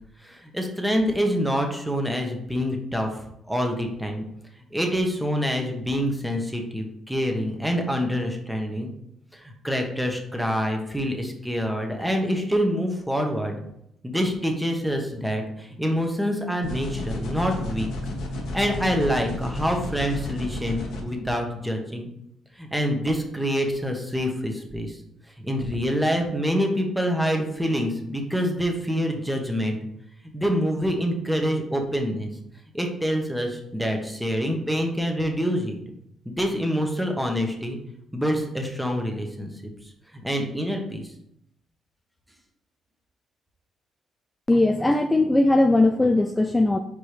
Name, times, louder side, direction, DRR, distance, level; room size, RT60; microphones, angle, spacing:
voice 1, 0.2-3.2 3.5-4.2 4.7-8.9 9.3-13.6 14.0-17.9 18.5-22.1 22.6-25.0 25.4-29.8 30.3-32.3 32.7-35.8 36.2-37.8 38.1-39.5 40.1-41.1, equal, 5° right, 2 dB, 1.2 m, -26 dB
sound 1, 16.6-21.0, left 1 dB, 75° left, 1.5 m, -32 dB
voice 2, 44.5-46.8, left 2 dB, 15° left, 6 dB, 0.4 m, -19 dB
4.9 x 4.5 x 4.9 m, 0.76 s
cardioid pair, 90°, 0 cm